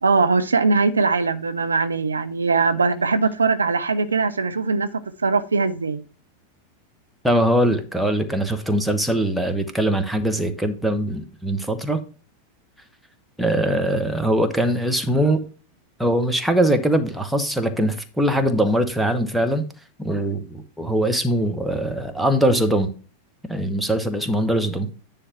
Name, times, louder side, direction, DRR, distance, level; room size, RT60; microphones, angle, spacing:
voice 1, 0.0-4.9 5.2-6.0, right 4 dB, 75° right, 0.5 m, -21 dB
voice 2, 7.2-12.0 13.4-15.4 16.0-19.6 20.0-22.9 23.5-24.9, right 1 dB, ahead, 1.1 m, -21 dB
9.9 x 3.4 x 5.8 m
figure-of-eight pair, 90°, 0 cm